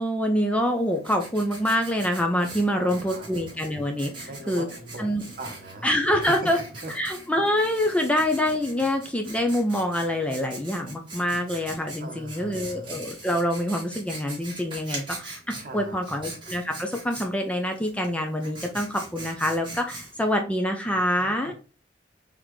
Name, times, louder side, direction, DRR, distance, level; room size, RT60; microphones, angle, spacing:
voice 1, 0.0-4.7 5.0-5.2 5.8-6.6 6.9-21.5, equal, 5° left, 3 dB, 0.5 m, -26 dB
Writing, 0.6-20.4, right 2 dB, 25° right, 1.5 m, -42 dB
voice 2, 2.7-3.3 4.3-6.5 6.8-6.9 12.0-12.9 15.6-16.1 20.9-21.5, right 2 dB, 50° right, 5 dB, 0.9 m, -40 dB
4.0 x 3.4 x 3.1 m, 0.35 s
head